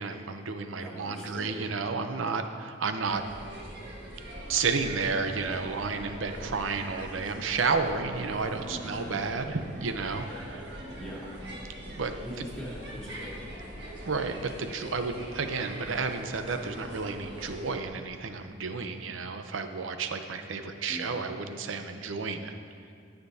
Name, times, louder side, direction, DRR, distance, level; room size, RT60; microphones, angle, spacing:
voice 1, 0.0-3.2 4.5-10.7 12.0-12.1 12.4-12.5 14.0-22.5, right 4 dB, 90° right, 7 dB, 0.7 m, -31 dB
voice 2, 0.8-1.9 8.4-9.1 11.0-11.3 12.2-13.4 20.9-21.2, equal, 5° left, -8 dB, 2.3 m, -41 dB
sound 1, 3.0-17.7, right 1 dB, 60° right, 1.6 m, -43 dB
19.0 x 6.8 x 2.7 m, 2.3 s
head